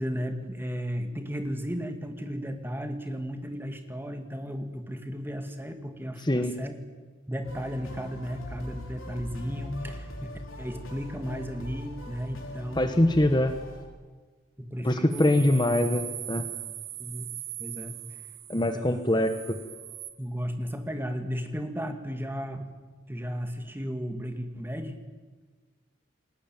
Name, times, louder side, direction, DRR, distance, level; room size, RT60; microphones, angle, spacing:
voice 1, 0.0-6.8 7.3-13.0 14.6-15.4 17.0-17.3 17.6-17.9 18.5-19.1 20.2-22.7 23.1-25.0, equal, 10° right, 6 dB, 2.2 m, -34 dB
voice 2, 6.2-6.5 12.8-13.5 14.8-16.5 18.5-19.6, left 1 dB, 20° left, 8 dB, 1.1 m, -24 dB
sound 1, 7.4-13.9, left 1 dB, 85° left, 4.8 m, -41 dB
sound 2, 15.1-20.1, right 12 dB, 85° right, 2.5 m, -40 dB
29.5 x 20.0 x 9.1 m, 1.4 s
head